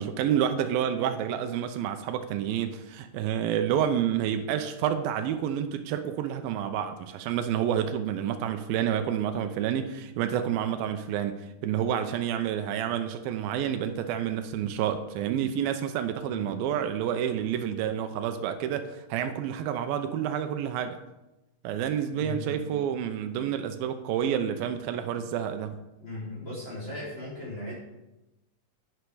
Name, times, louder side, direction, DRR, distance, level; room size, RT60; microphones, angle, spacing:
voice 1, 0.0-11.4 11.6-21.0 21.6-25.8, right 9 dB, 85° right, 8 dB, 2.5 m, -29 dB
voice 2, 16.2-16.7 22.1-22.6 24.9-25.2 26.0-27.7, left 1 dB, 30° left, -7 dB, 4.5 m, -38 dB
10.5 x 10.5 x 4.9 m, 0.96 s
omnidirectional pair, 4.2 m